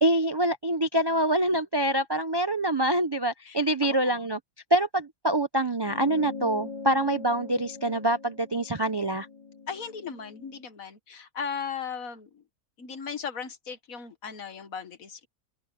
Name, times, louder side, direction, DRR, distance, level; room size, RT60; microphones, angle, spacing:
voice 1, 0.0-4.4 4.7-9.3, right 1 dB, 35° right, 0.4 m, -25 dB
voice 2, 3.5-4.3 9.7-12.4 12.8-15.3, left 6 dB, 65° left, 1.8 m, -37 dB
sound 1, 5.8-10.6, left 4 dB, 30° left, 0.6 m, -42 dB
open air
omnidirectional pair, 1.6 m